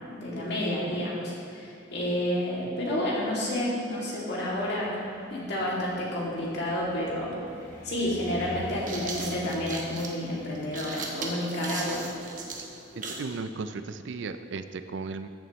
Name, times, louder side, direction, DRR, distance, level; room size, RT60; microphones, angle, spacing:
voice 1, 0.0-5.0 5.3-7.3 7.8-12.0, left 1 dB, 55° left, -5 dB, 2.4 m, -30 dB
Car, 4.4-12.6, right 1 dB, 10° left, 1.5 m, -46 dB
sound 1, 7.5-7.6 8.5-13.3, right 3 dB, 40° right, 1.0 m, -37 dB
voice 2, 13.2-15.3, right 4 dB, 65° right, 11 dB, 0.4 m, -35 dB
14.5 x 7.0 x 3.1 m, 2.7 s
head